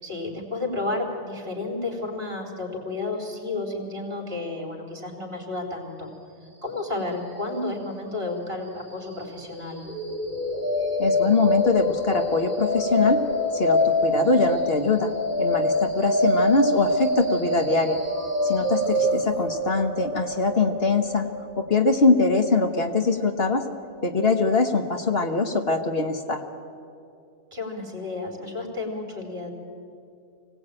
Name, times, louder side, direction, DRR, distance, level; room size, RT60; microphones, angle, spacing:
voice 1, 0.0-6.1 6.6-9.9 18.6-18.7 27.5-29.5, left 2 dB, 50° right, 2 dB, 4.0 m, -32 dB
sound 1, 9.8-23.8, left 1 dB, 10° right, 3.3 m, -26 dB
voice 2, 11.0-13.2 13.5-15.1 15.4-18.0 18.4-21.3 21.6-23.6 24.0-26.4, left 3 dB, 50° left, 5 dB, 1.3 m, -23 dB
24.5 x 18.0 x 8.9 m, 2.6 s
omnidirectional pair, 1.4 m